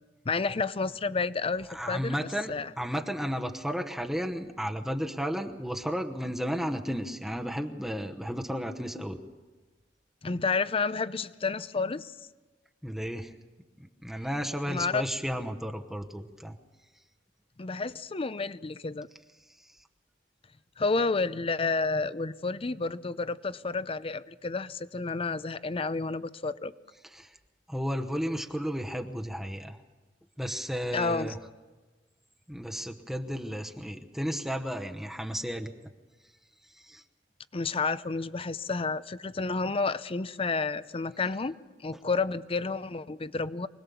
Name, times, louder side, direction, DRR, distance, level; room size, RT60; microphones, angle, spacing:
voice 1, 0.3-2.2 2.5-2.7 10.2-12.1 14.7-15.0 17.6-19.1 20.8-26.7 30.9-31.3 37.5-41.6 41.8-43.7, left 4 dB, 30° left, 15 dB, 0.6 m, -30 dB
voice 2, 1.7-9.2 12.8-13.3 13.8-16.6 19.6-19.8 27.1-27.4 27.7-29.8 30.4-31.4 32.5-35.7 36.7-37.0, equal, ahead, 4 dB, 1.0 m, -33 dB
25.0 x 19.0 x 7.0 m, 1.3 s
head